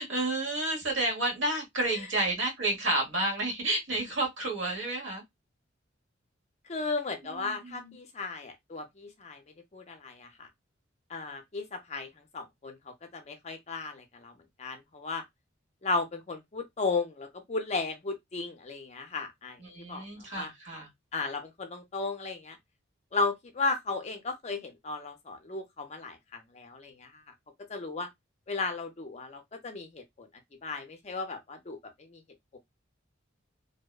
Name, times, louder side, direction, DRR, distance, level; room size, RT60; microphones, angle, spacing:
voice 1, 0.0-5.2 7.5-7.9 19.6-20.9, right 2 dB, 75° right, 1.1 m, -30 dB
voice 2, 6.7-9.4 9.7-10.5 11.1-12.1 12.3-14.3 14.6-15.2 15.8-19.6 19.9-20.0 20.3-20.5 21.1-22.6 23.1-27.2 27.7-28.1 28.5-30.3 30.6-32.2 32.5-32.6, left 3 dB, 35° left, 0.5 m, -35 dB
2.7 x 2.1 x 2.2 m
head